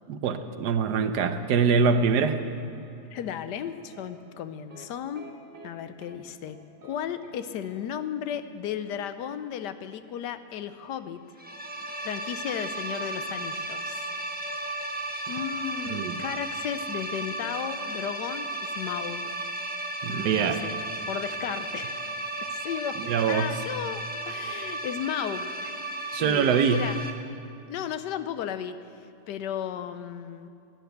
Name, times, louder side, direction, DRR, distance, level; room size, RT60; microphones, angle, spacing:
voice 1, 0.1-2.4 15.9-16.1 20.0-20.6 23.0-23.5 26.1-26.9, right 6 dB, 75° right, 9 dB, 1.3 m, -24 dB
sound 1, 2.7-3.7 3.9-4.1 4.7-4.9 5.1-5.7 6.0-6.2 6.5-6.9 7.2-7.4 7.6-7.8, right 2 dB, 45° right, 1.9 m, -49 dB
voice 2, 3.1-5.3 5.6-6.6 6.8-11.2 12.0-14.1 15.3-19.3 20.1-20.8 21.1-22.1 22.5-25.8 26.0-27.0 27.7-28.8 29.3-30.5, left 9 dB, 90° left, 11 dB, 1.3 m, -34 dB
sound 2, 11.4-27.1, right 2 dB, 10° right, 0.7 m, -34 dB
12.0 x 11.0 x 8.1 m, 2.5 s
omnidirectional pair, 1.8 m